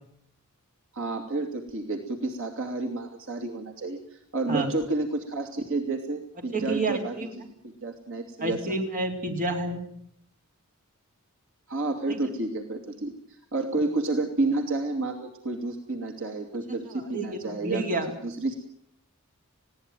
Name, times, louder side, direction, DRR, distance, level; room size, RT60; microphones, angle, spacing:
voice 1, 0.9-8.7 11.7-13.1 13.5-17.8 18.2-18.5, right 2 dB, 60° right, 4 dB, 2.7 m, -30 dB
voice 2, 6.5-7.3 8.4-9.8 17.1-18.1, right 2 dB, 40° right, 3 dB, 3.9 m, -29 dB
21.0 x 17.0 x 9.2 m, 0.69 s
head